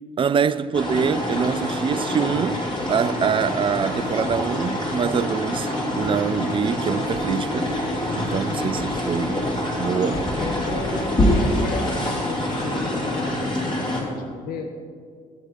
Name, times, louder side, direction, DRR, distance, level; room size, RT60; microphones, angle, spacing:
voice 1, 0.2-2.6 2.9-5.7 6.0-7.7 8.2-9.5 9.7-10.2, right 7 dB, 30° right, 0.4 m, -24 dB
sound 1, 0.7-14.0, left 1 dB, 25° left, 2.9 m, -25 dB
voice 2, 10.0-14.7, left 4 dB, 50° left, 1.1 m, -34 dB
14.5 x 7.8 x 4.3 m
figure-of-eight pair, 45°, 19 cm